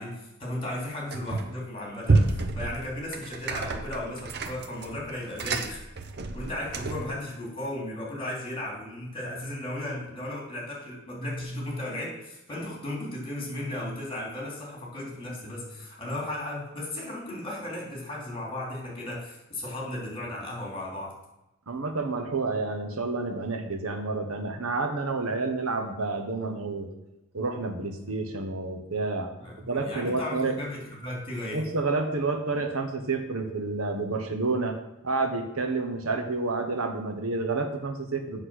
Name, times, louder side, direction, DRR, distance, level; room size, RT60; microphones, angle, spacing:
voice 1, 0.0-5.8 6.3-21.2 29.4-31.6, left 1 dB, 25° left, -2 dB, 3.5 m, -35 dB
sound 1, 1.1-1.6 2.0-7.2, right 3 dB, 50° right, 0.8 m, -29 dB
voice 2, 21.7-26.9 27.3-29.3 29.7-30.5 31.5-34.8 35.0-38.4, right 3 dB, 85° right, 6 dB, 1.2 m, -29 dB
8.2 x 6.5 x 6.3 m, 0.94 s
head